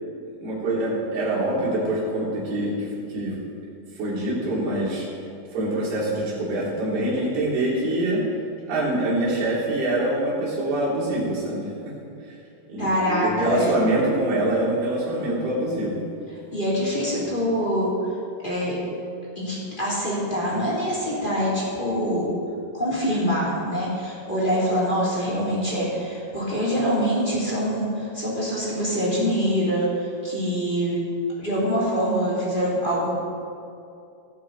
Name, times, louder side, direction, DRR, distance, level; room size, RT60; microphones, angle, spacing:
voice 1, 0.4-3.4 4.0-5.1 5.5-8.2 8.7-11.7 12.7-16.0 17.1-17.4, right 1 dB, 85° right, -6 dB, 4.8 m, -25 dB
voice 2, 12.8-13.8 16.5-18.1 18.4-18.8 19.4-22.3 22.7-31.0 31.4-33.1, equal, 15° left, -7 dB, 2.2 m, -24 dB
17.5 x 8.4 x 3.9 m, 2.6 s
omnidirectional pair, 4.4 m